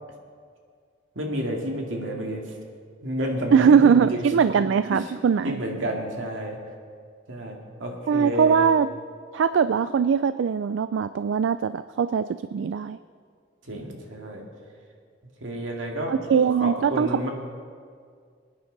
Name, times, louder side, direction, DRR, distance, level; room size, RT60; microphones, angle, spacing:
voice 1, 1.2-2.4 3.0-4.2 4.9-5.0 5.4-6.6 7.3-8.7 13.7-14.5 15.4-16.1 16.6-17.3, equal, 85° right, 1 dB, 2.2 m, -30 dB
voice 2, 3.5-5.6 8.1-8.9 9.3-13.0 16.1-17.3, right 6 dB, 65° right, 13 dB, 0.3 m, -21 dB
23.5 x 9.9 x 4.0 m, 2.1 s
head